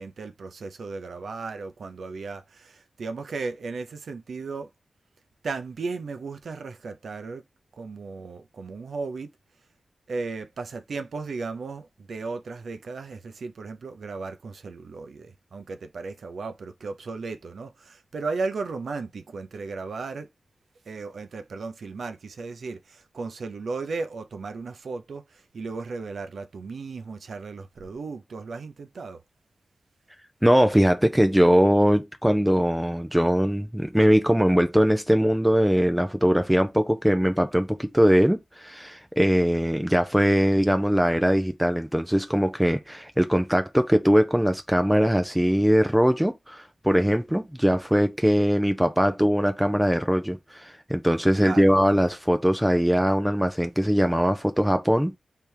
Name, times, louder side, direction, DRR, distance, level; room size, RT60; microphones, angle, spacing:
voice 1, 0.0-4.7 5.4-7.4 7.8-9.3 10.1-20.3 20.9-29.2 51.4-51.7, right 4 dB, 80° right, 0.7 m, -35 dB
voice 2, 30.4-55.2, equal, 5° right, 0.4 m, -21 dB
3.5 x 3.4 x 4.5 m
wide cardioid pair, 120°, 0 cm